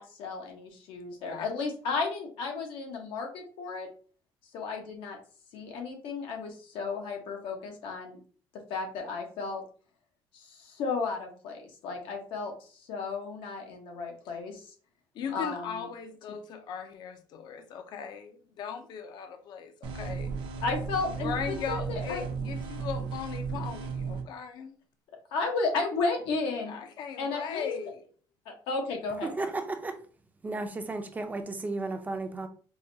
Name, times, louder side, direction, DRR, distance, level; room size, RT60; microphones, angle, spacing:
voice 1, 0.0-3.9 4.5-5.2 5.5-8.2 8.7-9.6 10.3-14.6 15.3-15.9 16.3-16.4 20.6-22.3 25.3-26.7 27.2-27.7 28.5-29.5, left 4 dB, 90° left, 1.0 m, -33 dB
voice 2, 15.2-20.3 21.2-24.8 26.7-28.0, left 7 dB, 60° left, 0.5 m, -38 dB
sound 1, 19.8-24.2, right 5 dB, 70° right, 0.6 m, -35 dB
voice 3, 29.3-29.9 30.4-32.5, right 3 dB, 20° right, 0.4 m, -34 dB
4.7 x 2.2 x 2.6 m
cardioid pair, 145°, 8 cm